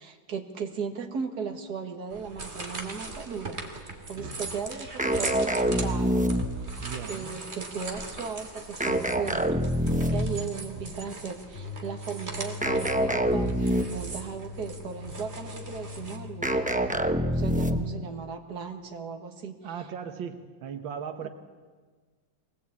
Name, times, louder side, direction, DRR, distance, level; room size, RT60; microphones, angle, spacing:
voice 1, 0.0-6.3 7.1-16.7 17.2-19.7 21.2-21.3, right 6 dB, 55° right, 4 dB, 2.4 m, -37 dB
sound 1, 2.1-16.2, right 2 dB, 35° right, 2.6 m, -40 dB
sound 2, 5.0-6.8 8.8-10.5 12.6-14.1 16.4-18.0, equal, 10° right, 0.4 m, -26 dB
voice 2, 6.8-7.3 19.6-21.3, right 7 dB, 90° right, 7 dB, 1.8 m, -37 dB
sound 3, 11.5-17.5, left 3 dB, 45° left, 0.7 m, -42 dB
23.0 x 19.5 x 8.5 m, 1.5 s
omnidirectional pair, 2.0 m